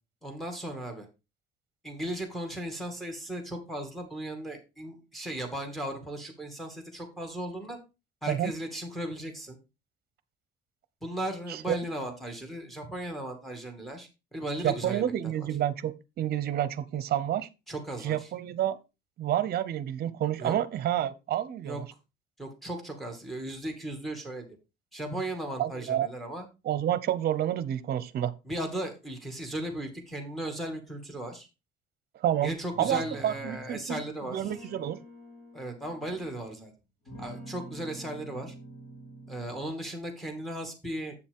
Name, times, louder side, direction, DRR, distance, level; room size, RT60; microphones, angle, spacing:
voice 1, 0.2-1.1 1.8-7.8 8.2-9.6 11.0-15.5 17.7-18.3 20.4-20.5 21.6-21.8 22.4-24.4 24.9-26.5 28.4-31.5 32.4-34.7 35.5-36.7 37.2-38.5 39.3-41.1, right 1 dB, ahead, 2.3 m, -36 dB
voice 2, 14.6-17.5 18.0-18.8 19.2-21.8 25.6-26.1 26.6-28.3 32.2-34.0 34.3-35.0, right 11 dB, 55° right, 0.8 m, -29 dB
sound 1, 32.7-33.8 34.4-36.6 37.0-39.6, right 1 dB, 60° left, 4.5 m, -47 dB
8.1 x 7.0 x 3.6 m
cardioid pair, 130°, 20 cm